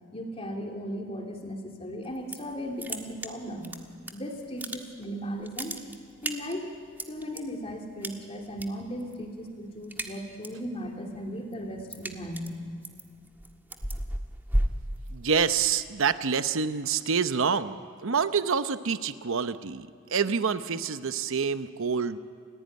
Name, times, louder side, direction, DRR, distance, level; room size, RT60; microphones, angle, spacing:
voice 1, 0.1-3.8 4.1-5.8 6.2-6.7 7.1-12.5, equal, 30° left, 1 dB, 3.0 m, -36 dB
sound 1, 2.0-2.5 2.8-4.1 4.4-5.1 5.4-7.4 8.0-8.7 9.0-9.3 9.6-10.6 11.0-15.6, right 1 dB, 10° right, 1.6 m, -33 dB
voice 2, 15.1-17.8 18.0-22.2, right 6 dB, 65° right, 11 dB, 0.8 m, -27 dB
29.5 x 16.0 x 9.4 m, 2.2 s
head